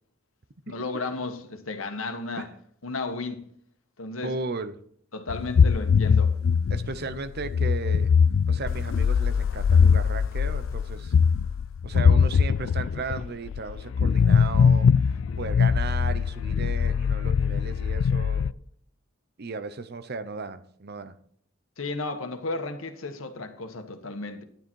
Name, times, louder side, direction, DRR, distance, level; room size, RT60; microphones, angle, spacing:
voice 1, 0.7-2.5 2.8-3.4 4.0-4.3 5.1-6.3 21.8-24.4, left 3 dB, 90° left, 1.5 m, -33 dB
voice 2, 4.2-4.7 6.7-8.1 8.5-11.1 11.8-14.9 15.4-18.5 19.4-21.1, right 4 dB, 50° right, 0.8 m, -35 dB
sound 1, 5.3-18.5, left 6 dB, 70° left, 0.3 m, -22 dB
10.5 x 10.0 x 4.6 m
head